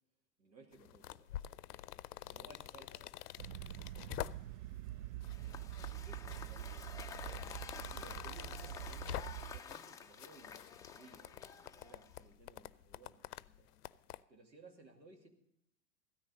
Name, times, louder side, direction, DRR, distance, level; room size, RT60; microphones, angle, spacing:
voice 1, 0.4-1.6 2.3-2.9 6.0-13.7 14.3-15.3, right 3 dB, 85° right, 4 dB, 2.4 m, -60 dB
sound 1, 0.7-4.7 5.2-5.9 6.3-9.9 10.2-14.2, left 13 dB, 65° left, 0.6 m, -47 dB
voice 2, 2.2-3.2 3.5-5.1, right 3 dB, 20° right, 3 dB, 2.2 m, -70 dB
sound 2, 3.4-9.6, right 14 dB, 50° right, 0.5 m, -45 dB
Cheering / Applause / Crowd, 5.2-12.3, left 6 dB, 10° left, 0.4 m, -51 dB
15.5 x 13.5 x 4.0 m, 0.80 s
figure-of-eight pair, 90°, 50 cm